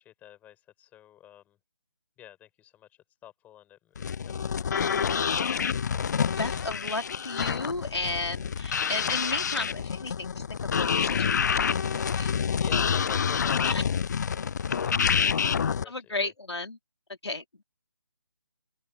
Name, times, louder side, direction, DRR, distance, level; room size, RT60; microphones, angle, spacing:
voice 1, 0.0-1.6 2.2-2.9 3.2-5.1 12.5-16.3, left 12 dB, 10° left, 6.1 m, -49 dB
sound 1, 4.0-15.8, left 7 dB, 40° left, 0.5 m, -27 dB
voice 2, 6.2-12.3 13.6-13.8 15.9-16.8 17.2-17.6, left 2 dB, 85° left, 2.8 m, -34 dB
open air
figure-of-eight pair, 150°, 14 cm